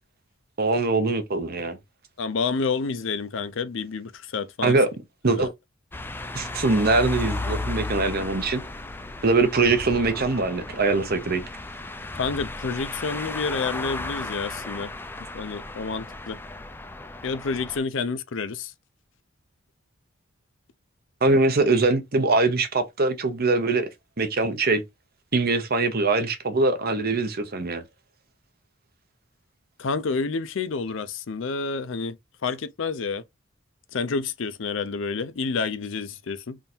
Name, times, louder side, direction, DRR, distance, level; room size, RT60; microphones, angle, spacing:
voice 1, 0.6-1.8 4.6-4.9 5.2-5.5 6.3-8.6 9.2-11.4 21.2-23.9 24.2-24.8 25.3-27.8, right 3 dB, 50° right, 0.9 m, -22 dB
voice 2, 2.2-4.8 5.3-5.5 12.1-14.9 15.3-16.4 17.2-18.7 29.8-32.2 32.4-33.2 33.9-36.6, left 4 dB, 70° left, 0.5 m, -29 dB
sound 1, 5.9-17.8, left 2 dB, 10° left, 0.4 m, -34 dB
3.6 x 2.6 x 4.3 m
head